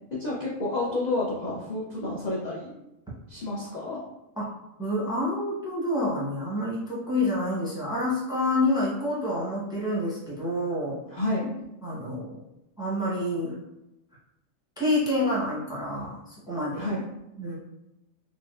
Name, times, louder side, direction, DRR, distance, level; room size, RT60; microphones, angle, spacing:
voice 1, 0.1-2.7 3.3-4.0 11.1-11.5 16.8-17.0, left 2 dB, 65° left, -4 dB, 0.4 m, -30 dB
voice 2, 4.8-11.0 11.8-12.4 12.8-13.6 14.8-16.9 17.4-17.6, left 1 dB, 5° right, -6 dB, 0.5 m, -28 dB
4.0 x 2.1 x 2.3 m, 0.91 s
omnidirectional pair, 1.4 m